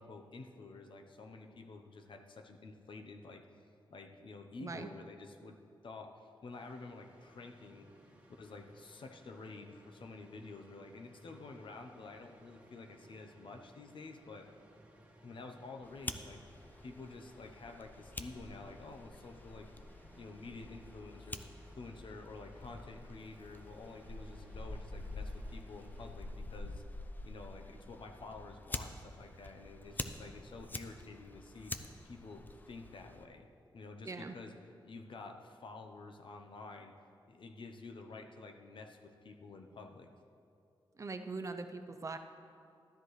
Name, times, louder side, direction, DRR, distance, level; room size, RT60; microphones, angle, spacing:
voice 1, 0.0-3.5 3.9-5.6 5.8-7.9 8.4-14.5 15.2-19.7 20.2-21.5 21.8-26.8 27.2-31.7 32.0-33.5 33.7-34.5 34.9-36.9 37.3-40.1, left 3 dB, 70° left, 4 dB, 0.8 m, -50 dB
sound 1, 6.5-26.4, right 1 dB, 15° right, 1.5 m, -61 dB
Fire, 15.8-33.2, left 2 dB, 20° left, 0.5 m, -47 dB
voice 2, 41.0-42.2, right 3 dB, 35° right, 8 dB, 0.5 m, -41 dB
13.0 x 10.5 x 3.2 m, 2.5 s
wide cardioid pair, 115°, 9 cm